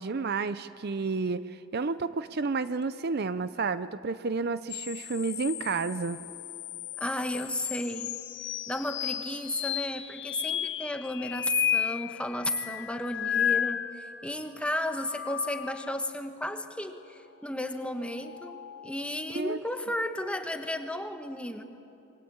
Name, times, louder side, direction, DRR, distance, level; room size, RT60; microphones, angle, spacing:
voice 1, 0.0-6.2 19.3-19.6, right 4 dB, 50° right, 13 dB, 0.6 m, -31 dB
sound 1, 4.7-14.3 14.7-16.1 17.9-19.0, left 10 dB, 55° left, 0.8 m, -34 dB
voice 2, 7.0-8.1 8.7-21.6, left 1 dB, 5° left, 7 dB, 1.2 m, -33 dB
27.5 x 23.0 x 8.7 m, 2.8 s
head